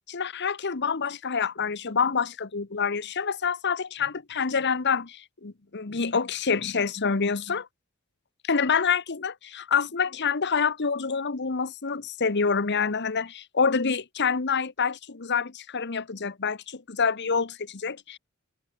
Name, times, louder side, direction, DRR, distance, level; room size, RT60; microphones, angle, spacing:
voice 1, 0.1-7.7 8.4-18.2, left 5 dB, 55° left, 1.1 m, -27 dB
open air
head